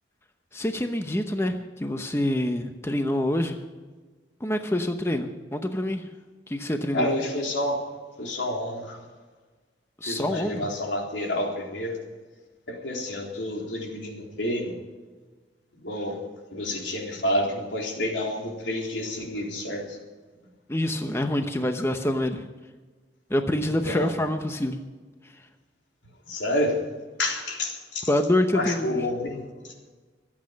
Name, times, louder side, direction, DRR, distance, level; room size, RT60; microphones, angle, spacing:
voice 1, 0.5-3.6 4.4-6.1 6.5-7.1 10.0-10.6 20.7-22.5 23.3-24.8 25.2-25.3 28.1-29.0, left 1 dB, 15° left, 6 dB, 0.8 m, -26 dB
voice 2, 6.9-7.8 8.2-9.0 10.0-12.0 12.7-14.7 15.8-16.2 16.5-20.0 23.9-24.1 26.3-26.8 27.2-28.1 28.5-29.7, left 1 dB, 85° left, 0 dB, 3.8 m, -29 dB
24.0 x 8.7 x 5.3 m, 1.4 s
head